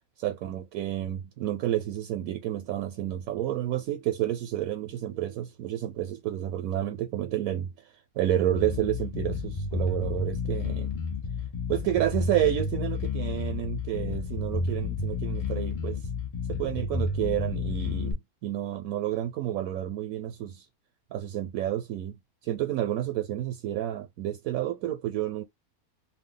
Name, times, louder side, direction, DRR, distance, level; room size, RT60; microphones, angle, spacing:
voice 1, 0.2-7.7 8.2-10.9 11.7-16.0 16.6-20.7 21.1-22.1 22.4-25.4, right 12 dB, 80° right, 1.0 m, -30 dB
Bass guitar, 8.5-18.1, left 4 dB, 50° left, 0.4 m, -31 dB
2.6 x 2.3 x 3.7 m
omnidirectional pair, 1.5 m